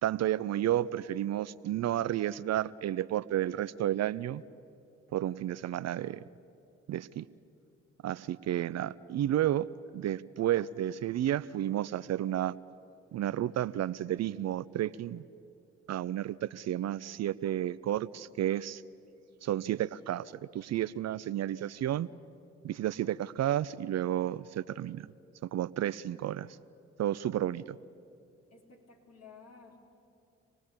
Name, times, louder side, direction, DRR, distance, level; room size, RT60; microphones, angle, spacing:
voice 1, 0.0-4.4 5.1-6.2 6.9-7.3 8.0-9.7 9.9-12.5 13.1-15.2 15.9-18.8 19.4-22.1 22.6-25.1 25.5-26.5 27.0-27.8, right 12 dB, 50° right, 18 dB, 0.5 m, -31 dB
voice 2, 28.5-29.8, left 5 dB, 50° left, 0 dB, 4.0 m, -54 dB
26.0 x 18.5 x 8.7 m, 2.6 s
hypercardioid pair, 45°, 34 cm